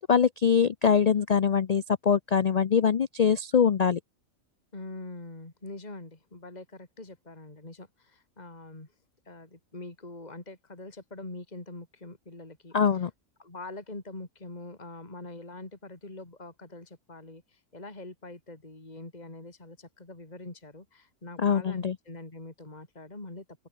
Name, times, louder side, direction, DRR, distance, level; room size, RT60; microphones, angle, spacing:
voice 1, 0.1-4.0 12.7-13.1 21.4-22.0, left 7 dB, 90° left, 0.3 m, -23 dB
voice 2, 4.7-8.9 9.3-12.8 13.4-23.4, left 2 dB, 30° left, 3.0 m, -44 dB
open air
omnidirectional pair, 1.5 m